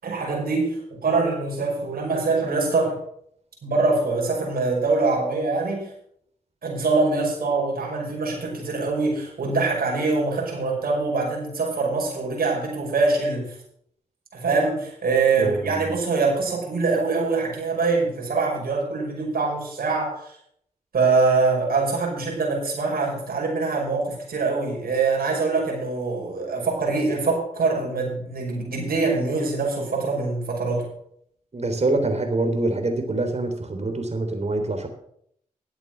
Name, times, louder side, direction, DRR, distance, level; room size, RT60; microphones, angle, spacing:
voice 1, 0.0-3.0 3.6-5.9 6.6-13.6 14.3-20.4 20.9-30.9, right 3 dB, 70° right, -1 dB, 5.5 m, -24 dB
voice 2, 15.3-16.0 31.5-34.9, right 2 dB, 45° right, 6 dB, 3.3 m, -25 dB
12.5 x 8.1 x 6.1 m, 0.68 s
supercardioid pair, 40°, 16 cm